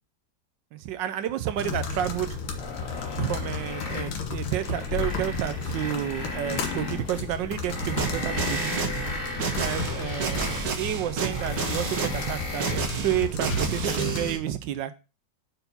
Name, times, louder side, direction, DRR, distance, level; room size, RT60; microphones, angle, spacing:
voice 1, 0.7-2.4 3.2-8.7 9.6-14.9, right 12 dB, 80° right, 1.3 m, -30 dB
sound 1, 1.5-14.3, left 5 dB, 90° left, 1.9 m, -34 dB
sound 2, 2.6-4.2 4.5-7.3 7.7-10.7 11.1-12.8, left 3 dB, 65° left, 2.5 m, -36 dB
sound 3, 8.0-14.4, right 5 dB, 60° right, 1.6 m, -30 dB
5.7 x 4.5 x 5.2 m
omnidirectional pair, 2.0 m